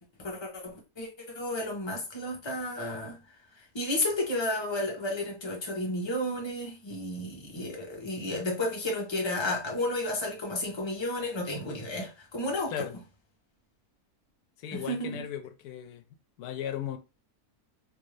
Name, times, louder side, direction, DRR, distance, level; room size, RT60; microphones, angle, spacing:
voice 1, 0.2-1.1 1.3-3.2 3.6-12.9 14.7-15.3, left 1 dB, 20° left, 0.9 m, -32 dB
voice 2, 14.6-16.0 16.4-17.0, left 9 dB, 90° left, 1.1 m, -36 dB
3.2 x 2.6 x 3.2 m
omnidirectional pair, 1.6 m